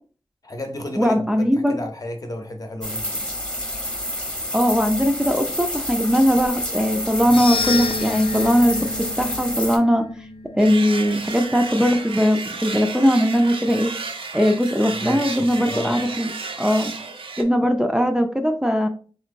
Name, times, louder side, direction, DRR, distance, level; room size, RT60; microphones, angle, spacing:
voice 1, 0.4-3.2 15.0-16.0, left 1 dB, 40° left, 0.8 m, -33 dB
voice 2, 1.0-1.8 4.5-8.9 9.2-10.0 10.5-13.9 14.3-16.3 16.6-16.9 17.4-18.9, equal, 10° right, 0.4 m, -19 dB
sound 1, 2.8-9.8, left 1 dB, 10° left, 0.9 m, -29 dB
sound 2, 7.2-11.5, left 4 dB, 75° left, 0.4 m, -30 dB
sound 3, 10.6-17.4, right 4 dB, 80° right, 0.5 m, -32 dB
3.5 x 2.8 x 2.5 m
wide cardioid pair, 55°, 9 cm